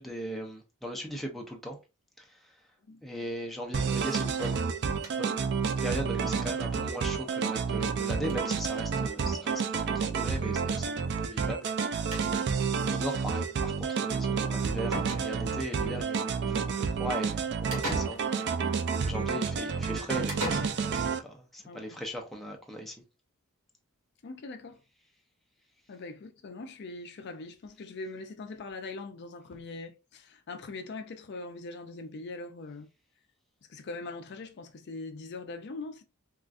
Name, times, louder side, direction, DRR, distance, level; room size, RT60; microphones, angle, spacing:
voice 1, 0.0-1.8 2.2-2.5 3.0-4.6 5.1-5.5 5.8-12.3 12.9-18.5 19.0-22.9, equal, ahead, 0.6 m, -38 dB
sound 1, 3.7-21.2, right 5 dB, 50° right, 0.3 m, -30 dB
sound 2, 4.4-5.4 5.8-5.9 6.1-6.2 6.5-6.6 7.7-8.0 8.2-8.6 9.4-9.5 9.8-9.9 11.7-11.8 12.1-12.6 14.4-14.5 14.9-15.7 17.7-18.6 20.3-21.2, right 1 dB, 85° right, 1.4 m, -39 dB
voice 2, 21.7-22.0 24.2-24.8 25.9-32.9 33.7-36.0, left 3 dB, 50° left, 0.4 m, -42 dB
3.7 x 2.4 x 2.3 m
head